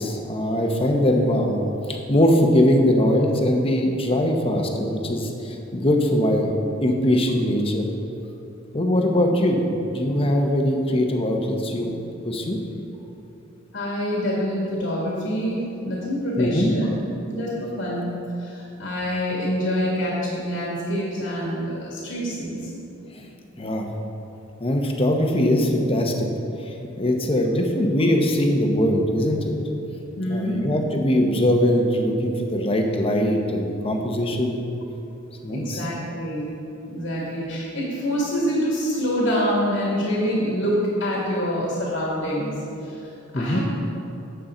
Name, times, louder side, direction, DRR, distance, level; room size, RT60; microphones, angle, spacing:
voice 1, 0.0-1.5 1.9-6.5 6.8-7.9 8.7-12.0 12.2-12.6 16.4-16.8 23.6-23.9 24.6-26.3 26.7-29.5 30.3-34.6 35.4-35.8 43.3-43.6, left 1 dB, 30° left, 2 dB, 0.9 m, -21 dB
voice 2, 13.7-16.9 17.2-18.1 18.4-22.7 30.2-30.6 35.5-36.5 36.9-43.6, equal, 75° left, -5 dB, 2.2 m, -26 dB
11.5 x 7.7 x 3.9 m, 2.9 s
head